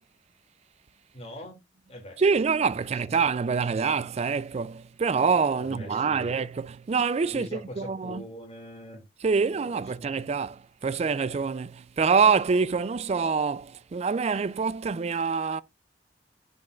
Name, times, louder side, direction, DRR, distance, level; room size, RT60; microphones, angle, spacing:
voice 1, 1.1-1.6 1.9-2.2 2.9-3.2 3.7-3.8 5.6-6.4 7.3-9.0 9.4-10.1, equal, 35° left, 2.6 m, -43 dB
voice 2, 2.2-8.2 9.2-15.6, right 5 dB, 35° right, 0.4 m, -26 dB
10.5 x 5.2 x 2.4 m
head